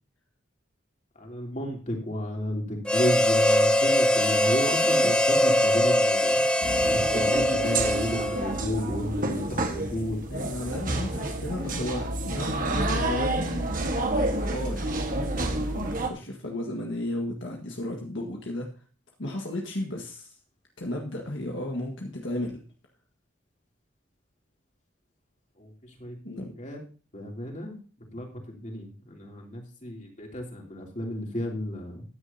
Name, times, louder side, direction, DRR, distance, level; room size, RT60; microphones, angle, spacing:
voice 1, 1.2-6.4 6.9-10.2 25.6-26.2 26.6-26.8 27.1-27.8 28.1-32.0, left 1 dB, 35° left, 0 dB, 3.1 m, -33 dB
Harmonica, 2.9-8.6, left 1 dB, 5° left, 0.6 m, -22 dB
voice 2, 4.8-5.1 9.3-9.8 10.3-13.7 14.4-18.7 19.2-20.4 20.8-22.6 26.2-26.5, left 1 dB, 65° left, 0 dB, 1.7 m, -34 dB
sound 1, 6.6-16.1, right 2 dB, 40° right, 1.5 m, -29 dB
14.5 x 9.9 x 2.8 m, 0.37 s
head